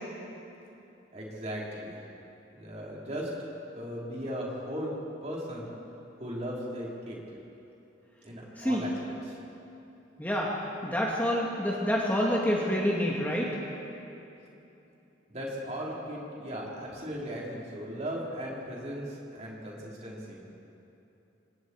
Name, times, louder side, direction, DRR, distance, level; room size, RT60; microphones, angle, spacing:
voice 1, 1.1-2.0 2.5-3.3 3.7-4.9 5.2-5.7 6.2-7.2 8.2-8.9 9.2-9.4 15.3-20.4, equal, 35° right, -5 dB, 4.9 m, -37 dB
voice 2, 10.2-13.6, equal, 10° left, -4 dB, 2.3 m, -28 dB
28.5 x 25.5 x 4.9 m, 2.9 s
head